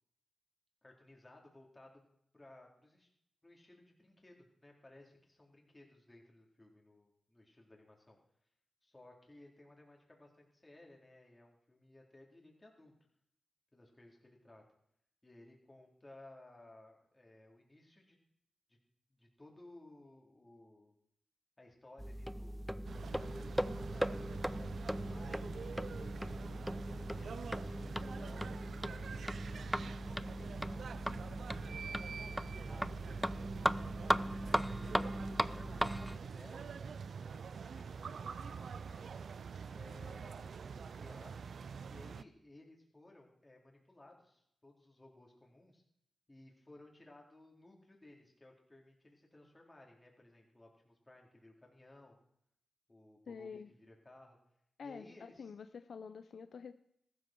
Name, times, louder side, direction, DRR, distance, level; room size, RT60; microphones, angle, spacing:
voice 1, 0.8-2.0 2.3-3.1 3.4-8.2 8.8-12.9 13.7-14.6 15.2-18.2 19.1-21.0 21.6-26.4 26.9-28.5 28.8-30.8 31.3-31.7 32.5-33.4 34.2-36.7 37.2-39.0 39.7-41.5 41.9-45.8 46.3-52.2 52.9-54.4 54.8-55.5, left 2 dB, 20° left, 0 dB, 4.2 m, -59 dB
sound 1, 22.0-36.2, equal, 5° right, 0.5 m, -38 dB
sound 2, 22.8-42.2, right 6 dB, 70° right, 0.5 m, -45 dB
sound 3, 26.1-28.3 28.7-33.7, equal, 20° right, 3.6 m, -67 dB
voice 2, 53.3-53.7 54.8-56.7, left 6 dB, 70° left, 10 dB, 0.6 m, -48 dB
14.5 x 12.5 x 4.6 m, 0.73 s
cardioid pair, 65°, 0 cm